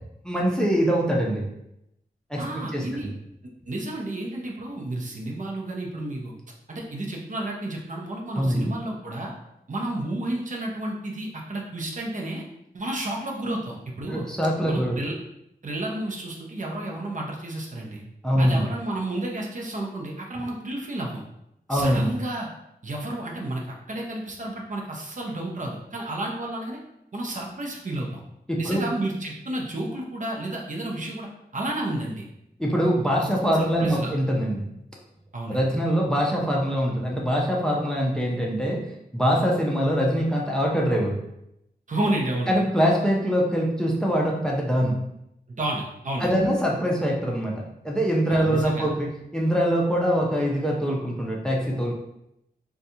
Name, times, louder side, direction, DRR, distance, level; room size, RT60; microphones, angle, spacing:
voice 1, 0.2-1.4 2.3-2.4 2.7-2.8 8.4-8.7 14.1-15.0 18.2-18.6 21.7-22.1 28.5-28.9 32.6-34.7 35.5-38.8 39.1-41.2 42.5-45.0 46.2-49.1 49.3-51.9, equal, 5° left, -2 dB, 0.6 m, -23 dB
voice 2, 2.4-3.1 3.7-6.3 6.7-9.3 9.7-12.4 12.7-14.3 14.6-15.1 15.6-18.0 18.4-21.2 21.7-22.5 22.8-26.8 27.1-28.2 28.6-31.3 31.5-32.3 33.2-34.1 35.3-35.6 41.9-42.5 45.5-46.3 48.3-48.9, right 1 dB, 50° right, -1 dB, 0.7 m, -31 dB
4.0 x 2.3 x 2.7 m, 0.82 s
wide cardioid pair, 80°, 17 cm